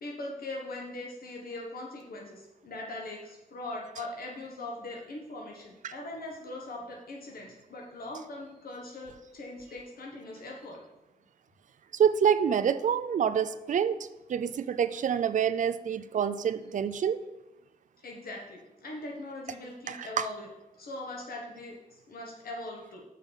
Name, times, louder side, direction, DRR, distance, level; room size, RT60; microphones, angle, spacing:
voice 1, 0.0-10.8 18.0-20.5 20.7-23.0, left 2 dB, 85° left, -1 dB, 1.3 m, -41 dB
voice 2, 11.9-14.0 14.3-17.2 19.9-20.2, right 8 dB, 60° right, 11 dB, 0.4 m, -27 dB
6.6 x 5.3 x 5.4 m, 0.98 s
wide cardioid pair, 115°, 15 cm